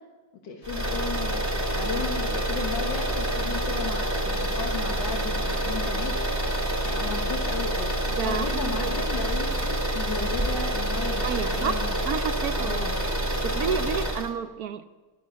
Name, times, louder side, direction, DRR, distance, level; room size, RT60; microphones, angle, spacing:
voice 1, 0.4-1.4 1.7-12.0 12.6-13.0, left 5 dB, 85° left, 1 dB, 2.1 m, -35 dB
sound 1, 0.6-14.3, right 1 dB, 10° right, 2.1 m, -27 dB
voice 2, 8.1-9.1 11.1-12.9 13.4-14.8, right 7 dB, 65° right, 10 dB, 1.1 m, -31 dB
13.5 x 12.0 x 8.3 m, 1.3 s
omnidirectional pair, 1.9 m